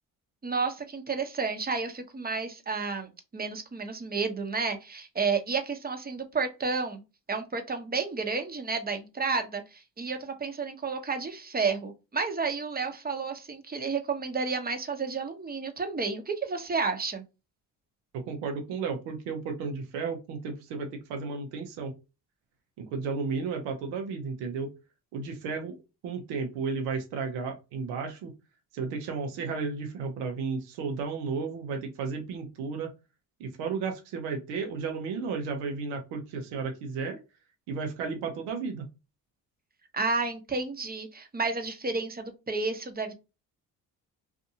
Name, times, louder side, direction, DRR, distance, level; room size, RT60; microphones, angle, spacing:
voice 1, 0.4-7.0 7.3-17.2 39.9-43.1, right 4 dB, 25° right, 6 dB, 0.8 m, -31 dB
voice 2, 18.1-21.9 22.8-24.7 25.1-25.8 26.0-28.3 28.7-32.9 33.4-37.2 37.7-38.9, right 5 dB, 90° right, 4 dB, 0.7 m, -33 dB
2.6 x 2.5 x 2.7 m, 0.27 s
supercardioid pair, 65°, 40 cm